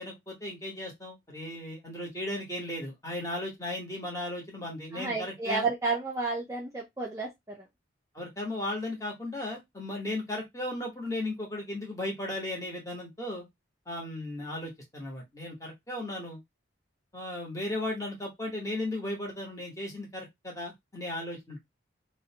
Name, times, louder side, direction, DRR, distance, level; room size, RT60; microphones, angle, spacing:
voice 1, 0.0-5.7 8.1-13.4 13.9-16.4 17.1-21.6, left 1 dB, 15° left, 0.9 m, -36 dB
voice 2, 4.9-7.7, right 3 dB, 15° right, 0.4 m, -31 dB
2.6 x 2.1 x 2.7 m
head